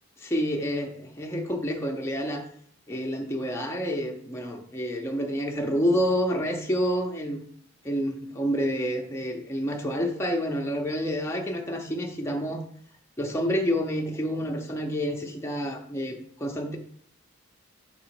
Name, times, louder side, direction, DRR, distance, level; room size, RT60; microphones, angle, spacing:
voice 1, 0.2-2.4 2.9-7.4 7.8-12.6 13.2-16.8, equal, 10° left, 0 dB, 0.7 m, -28 dB
6.7 x 3.7 x 5.8 m, 0.62 s
head